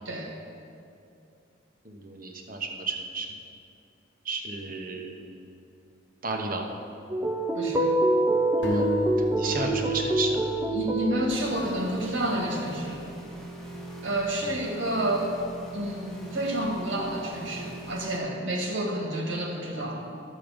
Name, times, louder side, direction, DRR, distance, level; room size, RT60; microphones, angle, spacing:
voice 1, 1.8-3.3 4.2-5.3 6.2-6.8 8.6-8.9 9.4-10.4 14.4-14.6, right 3 dB, 45° right, 2 dB, 1.1 m, -33 dB
sound 1, 7.1-11.3, right 1 dB, 15° right, 0.7 m, -25 dB
voice 2, 7.5-7.9 10.7-13.0 14.0-15.3 15.7-20.0, right 1 dB, 80° right, 0 dB, 2.0 m, -29 dB
sound 2, 8.6-12.2, left 1 dB, 60° left, 1.2 m, -33 dB
sound 3, 11.3-18.2, right 1 dB, 5° left, 1.3 m, -41 dB
12.5 x 7.6 x 5.2 m, 2.6 s
head